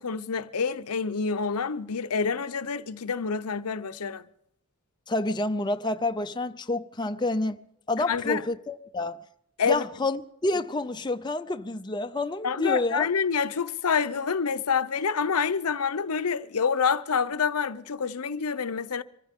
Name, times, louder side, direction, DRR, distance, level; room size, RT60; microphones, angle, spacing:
voice 1, 0.0-4.2 8.1-8.4 9.6-9.8 12.4-19.0, left 6 dB, 90° left, 0.8 m, -27 dB
voice 2, 5.1-7.6 7.9-9.2 9.7-13.1, left 2 dB, 20° left, 0.6 m, -28 dB
24.5 x 15.0 x 3.7 m
head